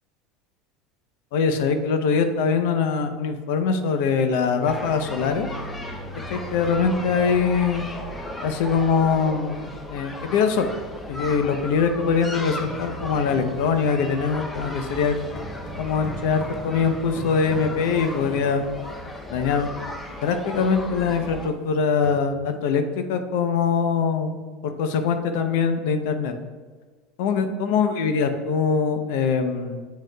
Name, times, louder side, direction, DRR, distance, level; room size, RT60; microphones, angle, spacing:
voice 1, 1.3-5.5 6.3-7.8 8.4-10.7 11.1-15.2 15.8-18.6 19.3-19.7 20.2-24.4 24.6-26.3 27.2-29.8, left 5 dB, 70° left, 7 dB, 0.7 m, -23 dB
sound 1, 4.6-21.5, left 1 dB, 10° left, 0.6 m, -35 dB
sound 2, 12.6-19.1 19.8-19.9 20.2-20.4 20.8-20.9 21.5-21.6 21.8-22.2, equal, 40° left, 1.7 m, -40 dB
8.2 x 6.3 x 2.3 m, 1.4 s
cardioid pair, 165°, 0 cm